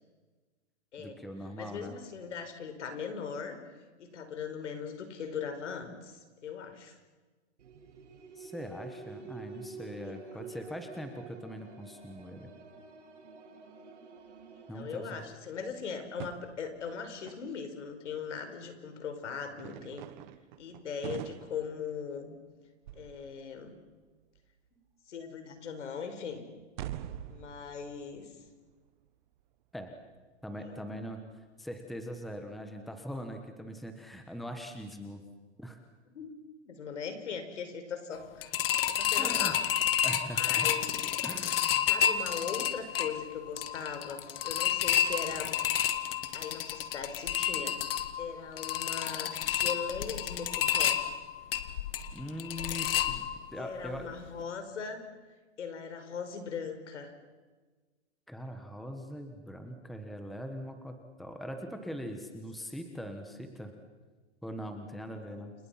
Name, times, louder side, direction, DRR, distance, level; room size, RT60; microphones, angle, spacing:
voice 1, 1.0-2.0 8.4-12.5 14.7-15.2 29.7-29.9 30.4-31.2 31.6-35.2 35.6-35.8 39.2-39.6 40.0-40.8 41.2-42.1 52.1-53.3 53.5-54.0 58.3-63.7 64.4-65.5, equal, ahead, 5 dB, 1.3 m, -41 dB
voice 2, 1.6-3.6 4.0-7.0 14.7-20.0 20.6-22.3 22.9-23.8 24.7-24.8 25.1-26.5 27.3-28.3 30.5-30.8 36.1-36.3 36.6-38.5 38.9-39.6 40.3-41.2 41.9-45.5 46.3-51.0 53.5-55.0 55.6-57.1 65.1-65.4, left 6 dB, 75° left, 7 dB, 5.1 m, -40 dB
sound 1, 7.6-15.2, right 4 dB, 75° right, 7.6 m, -49 dB
sound 2, 14.4-14.5 14.7-15.3 15.7-17.5 19.0-19.1 19.5-22.5 22.8-23.9 24.2-24.5 25.8-26.2 26.6-29.5 30.0-30.2 30.9-31.0 31.4-31.5 31.7-31.8 32.3-32.4 33.5-33.6, right 12 dB, 40° right, 1.3 m, -45 dB
sound 3, 38.4-53.6 53.9-54.0 54.4-54.5, left 10 dB, 50° left, 1.8 m, -30 dB
30.0 x 26.5 x 5.8 m, 1.3 s
hypercardioid pair, 160°, 36 cm